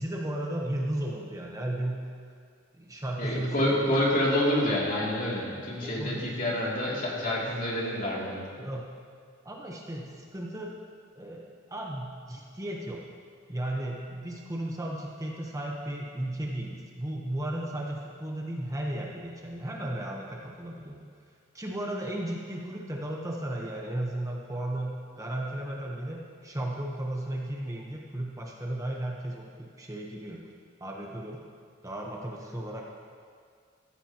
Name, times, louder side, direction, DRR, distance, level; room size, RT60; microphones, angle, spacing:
voice 1, 0.0-2.0 2.8-4.1 5.8-6.3 8.5-8.9 9.4-10.7 11.1-13.0 13.5-21.0 21.5-30.4 30.8-31.4 31.8-33.0, right 1 dB, 15° right, -1 dB, 1.0 m, -35 dB
voice 2, 3.2-8.4, left 1 dB, 40° left, -4 dB, 2.8 m, -27 dB
15.0 x 15.0 x 3.0 m, 2.1 s
head